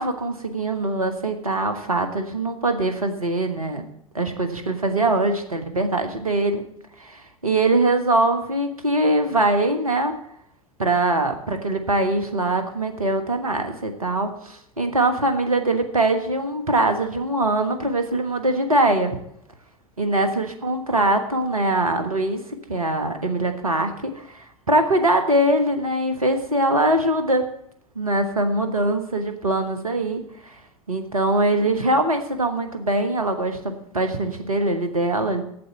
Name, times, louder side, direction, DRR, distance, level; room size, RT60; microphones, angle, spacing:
voice 1, 0.0-3.9 4.1-6.7 7.0-10.1 10.8-19.1 20.0-22.4 22.7-27.4 27.9-30.6 30.9-35.4, right 2 dB, 80° right, 7 dB, 1.5 m, -22 dB
8.5 x 8.1 x 8.6 m, 0.73 s
figure-of-eight pair, 80°, 18 cm